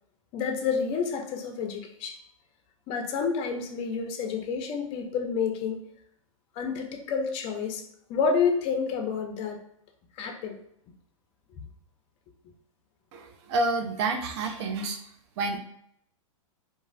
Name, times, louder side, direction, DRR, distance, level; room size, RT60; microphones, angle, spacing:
voice 1, 0.3-2.2 2.9-5.8 6.6-7.8 8.1-9.6 10.2-10.6, left 5 dB, 35° left, 4 dB, 0.5 m, -29 dB
voice 2, 13.1-15.0 15.4-15.6, right 2 dB, 50° right, 5 dB, 0.5 m, -29 dB
2.9 x 2.3 x 2.6 m, 0.70 s
hypercardioid pair, 115°, 18 cm